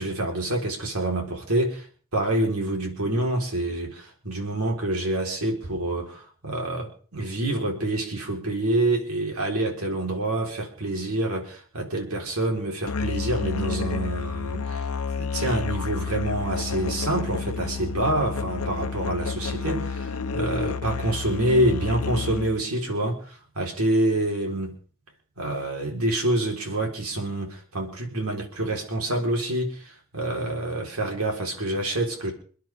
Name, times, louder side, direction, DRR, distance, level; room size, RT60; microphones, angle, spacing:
voice 1, 0.0-1.7 2.1-14.9 15.2-24.8 25.4-32.3, right 1 dB, 90° right, 1 dB, 4.3 m, -27 dB
Musical instrument, 12.9-22.7, left 5 dB, 85° left, 0.9 m, -30 dB
28.5 x 10.0 x 3.6 m, 0.43 s
head